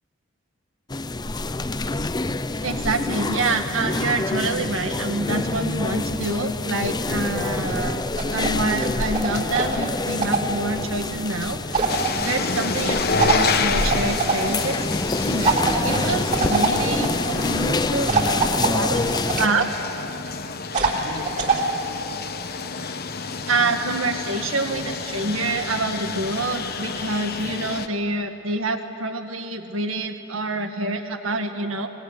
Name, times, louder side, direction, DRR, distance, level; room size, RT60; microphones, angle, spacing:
sound 1, 0.9-19.5, left 2 dB, 20° left, 0.6 m, -27 dB
voice 1, 2.6-8.0 8.3-11.6 12.2-14.8 15.2-18.1 18.6-19.0 19.4-19.7 23.5-31.9, right 2 dB, 80° right, 5 dB, 2.0 m, -26 dB
sound 2, 7.5-8.5 8.8-10.6 11.7-12.1 13.2-14.3 15.4-17.1 18.1-19.6 20.7-21.6, right 4 dB, 40° right, 3.8 m, -24 dB
sound 3, 11.9-27.9, left 5 dB, 50° left, 1.1 m, -29 dB
24.5 x 20.5 x 9.9 m, 2.7 s
head